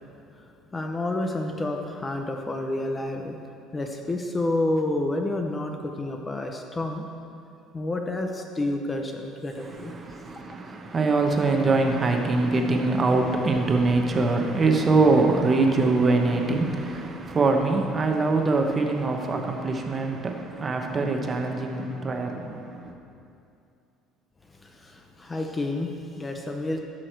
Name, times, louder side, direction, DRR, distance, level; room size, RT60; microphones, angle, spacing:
voice 1, 0.3-3.4 3.7-7.1 7.7-9.9 24.5-26.8, left 2 dB, 15° left, 3 dB, 0.6 m, -29 dB
voice 2, 9.6-22.9, right 3 dB, 25° right, 3 dB, 0.9 m, -23 dB
15.0 x 6.3 x 4.5 m, 2.6 s
cardioid pair, 145°, 0 cm